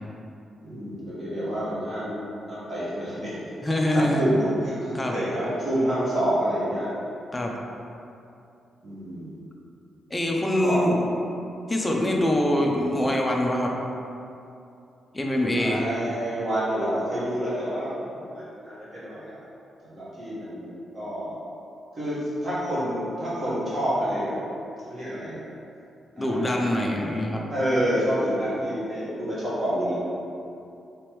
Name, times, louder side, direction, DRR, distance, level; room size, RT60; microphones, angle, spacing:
voice 1, 0.6-2.2 2.5-3.3 3.7-6.9 8.8-9.4 10.6-10.8 15.6-19.3 19.8-21.3 21.9-24.4 24.9-25.4 26.2-26.6 27.5-29.9, equal, 30° right, -10 dB, 1.2 m, -28 dB
voice 2, 3.6-4.2 4.9-5.1 7.3-7.5 10.1-11.1 11.7-13.7 15.1-15.8 26.2-27.4, left 1 dB, 15° left, -1 dB, 0.4 m, -24 dB
3.3 x 3.0 x 3.0 m, 2.7 s
wide cardioid pair, 165°, 0 cm